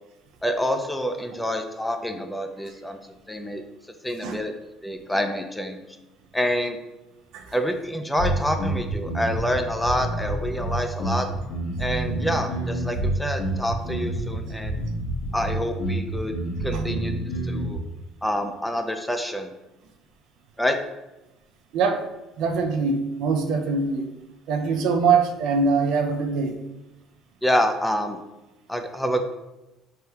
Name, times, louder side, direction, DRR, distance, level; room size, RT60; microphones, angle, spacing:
voice 1, 0.4-3.0 3.3-3.6 4.0-4.5 4.8-5.8 6.3-6.8 7.5-11.3 11.8-14.8 15.3-16.4 16.6-17.8 18.2-19.5 20.6-20.8 27.4-28.2 28.7-29.2, equal, 5° left, 6 dB, 0.4 m, -27 dB
sound 1, 8.2-17.8, right 2 dB, 70° left, 1.0 m, -28 dB
voice 2, 21.7-22.1 22.4-24.1 24.5-26.6, right 4 dB, 70° right, 5 dB, 0.4 m, -23 dB
3.4 x 2.2 x 2.8 m, 0.97 s
supercardioid pair, 85°, 0 cm